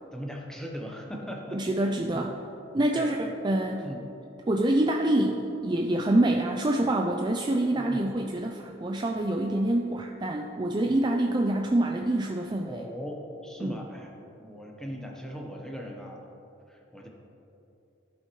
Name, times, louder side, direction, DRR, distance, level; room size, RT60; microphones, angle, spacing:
voice 1, 0.1-2.2 2.9-3.1 3.8-4.0 7.7-8.0 12.7-14.1 14.4-16.2 16.7-17.1, equal, 5° left, 0 dB, 0.9 m, -39 dB
voice 2, 1.5-2.4 2.7-3.9 4.5-12.8 13.6-13.8, right 1 dB, 25° right, 2 dB, 0.3 m, -26 dB
15.0 x 5.5 x 3.1 m, 2.9 s
head